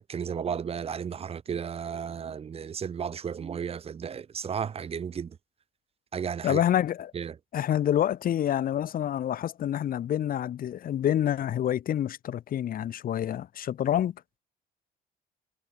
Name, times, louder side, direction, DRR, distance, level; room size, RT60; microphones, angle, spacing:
voice 1, 0.0-5.4 6.1-6.6 7.1-7.4, right 7 dB, 35° right, 1.3 m, -34 dB
voice 2, 6.4-7.1 7.5-14.1, left 10 dB, 55° left, 5.2 m, -27 dB
cardioid pair, 110°, 17 cm